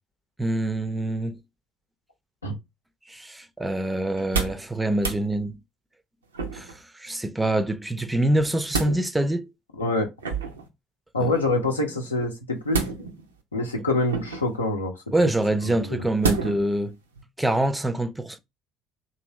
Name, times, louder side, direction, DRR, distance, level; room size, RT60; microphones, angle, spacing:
voice 1, 0.4-1.4 3.1-5.6 6.5-6.7 7.0-9.5 11.2-11.3 15.1-16.9 17.4-18.4, right 1 dB, 10° right, 0.4 m, -25 dB
sound 1, 4.1-4.7 5.0-5.2 6.3-6.8 8.3-9.0 10.2-10.7 12.7-13.3 14.1-14.6 16.2-16.7 17.2-17.3, right 4 dB, 80° right, 0.4 m, -28 dB
voice 2, 9.8-10.1 11.1-12.8 13.5-14.9 15.6-16.1, left 2 dB, 85° left, 0.6 m, -25 dB
2.8 x 2.6 x 3.0 m
figure-of-eight pair, 55°, 0 cm